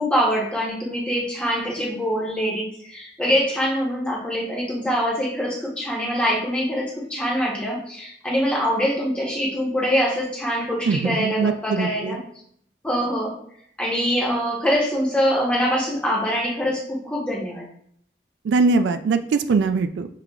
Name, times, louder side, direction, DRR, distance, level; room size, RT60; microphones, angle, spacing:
voice 1, 0.0-12.2 12.8-13.4 13.8-17.7, equal, 5° left, -4 dB, 0.9 m, -24 dB
voice 2, 10.8-12.2 18.4-20.1, right 4 dB, 90° right, 9 dB, 0.3 m, -21 dB
6.6 x 2.3 x 2.3 m, 0.67 s
head